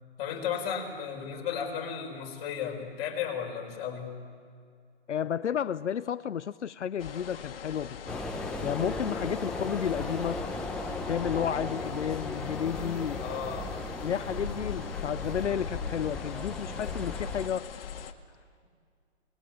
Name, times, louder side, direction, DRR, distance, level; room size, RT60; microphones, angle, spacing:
voice 1, 0.2-4.1 13.2-13.7, left 8 dB, 30° left, 1 dB, 4.8 m, -34 dB
voice 2, 5.1-8.2 8.6-10.4 11.1-13.3 14.0-17.7, left 9 dB, 90° left, 14 dB, 0.7 m, -32 dB
sound 1, 7.0-18.1, left 8 dB, 55° left, 1.9 m, -41 dB
sound 2, 8.1-17.5, left 2 dB, ahead, 0.8 m, -37 dB
29.0 x 20.5 x 9.0 m, 2.2 s
hypercardioid pair, 150°, 34 cm